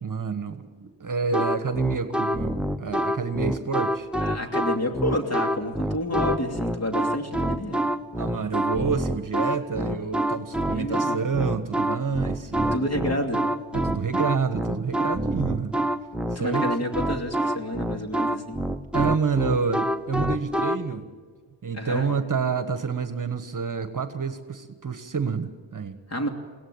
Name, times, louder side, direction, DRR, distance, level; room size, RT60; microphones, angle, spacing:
voice 1, 0.0-4.1 8.2-13.0 13.7-15.8 16.3-16.6 18.9-21.0 21.6-26.0, right 5 dB, 40° right, 9 dB, 1.4 m, -28 dB
sound 1, 1.3-20.8, equal, ahead, 0.9 m, -26 dB
voice 2, 4.2-7.8 10.7-11.2 12.7-13.4 16.3-18.6 21.7-22.1 26.1-26.3, left 1 dB, 30° left, 4 dB, 3.0 m, -29 dB
21.5 x 17.5 x 8.7 m, 1.5 s
cardioid pair, 70°, 47 cm